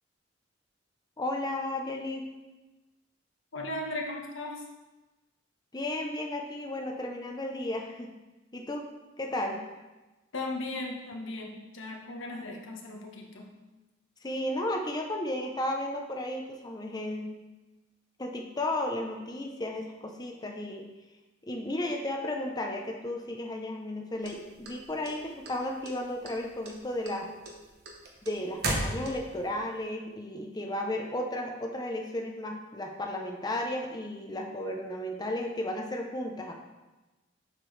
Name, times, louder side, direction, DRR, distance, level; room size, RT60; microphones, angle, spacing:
voice 1, 1.2-2.3 5.7-8.2 8.5-8.9 9.2-9.6 14.2-17.3 18.2-20.9 21.4-27.3 28.2-36.5, left 1 dB, 20° left, 2 dB, 0.6 m, -34 dB
voice 2, 3.5-4.6 10.3-13.6, left 2 dB, 85° left, 1 dB, 1.1 m, -37 dB
sound 1, 24.2-25.5 25.8-26.4 26.6-29.5, right 2 dB, 55° right, 1.1 m, -34 dB
7.6 x 5.9 x 3.3 m, 1.1 s
head